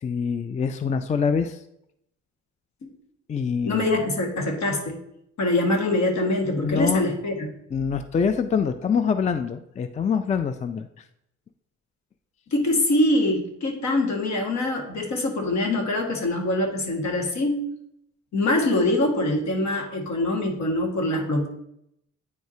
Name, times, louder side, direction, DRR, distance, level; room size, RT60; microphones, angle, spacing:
voice 1, 0.0-1.6 3.3-4.0 6.6-7.1 7.7-10.9, left 6 dB, 25° left, 9 dB, 0.4 m, -25 dB
voice 2, 3.7-5.0 5.4-7.5 12.5-17.7 18.3-21.5, left 1 dB, 65° left, 1 dB, 1.8 m, -24 dB
9.4 x 4.6 x 2.8 m, 0.77 s
cardioid pair, 90°, 30 cm